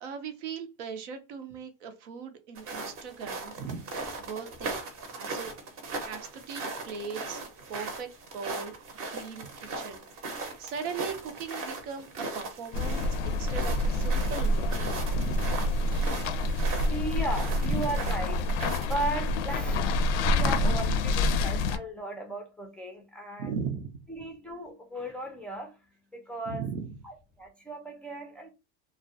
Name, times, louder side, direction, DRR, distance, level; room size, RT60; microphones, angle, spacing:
voice 1, 0.0-3.8 4.2-4.9 5.2-5.5 6.0-7.4 7.7-8.8 9.1-10.0 10.3-15.5 17.6-17.9 20.4-21.0 23.4-24.0 26.5-27.0, right 6 dB, 85° right, 0.6 m, -38 dB
sound 1, 2.5-19.0, right 3 dB, 40° right, 0.7 m, -39 dB
sound 2, 12.7-21.8, left 1 dB, 90° left, 0.5 m, -27 dB
voice 2, 16.6-19.8 20.2-23.5 24.1-25.9 26.1-26.6 27.0-28.5, right 1 dB, 5° left, 0.3 m, -36 dB
2.3 x 2.0 x 2.6 m
supercardioid pair, 120°, 35 cm